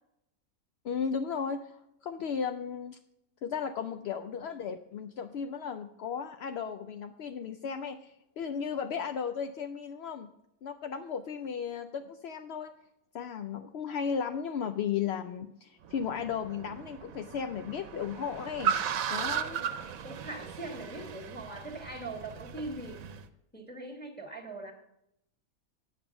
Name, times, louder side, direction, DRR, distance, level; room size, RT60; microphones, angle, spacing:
voice 1, 0.8-3.0 3.4-10.3 10.6-12.7 13.1-18.7 19.1-19.6, left 7 dB, 75° left, 7 dB, 0.6 m, -35 dB
Car, 15.8-23.2, right 8 dB, 70° right, 1.1 m, -36 dB
voice 2, 19.7-23.0 23.5-24.7, right 2 dB, 5° left, 0 dB, 1.6 m, -41 dB
9.9 x 7.4 x 5.8 m, 0.82 s
omnidirectional pair, 1.6 m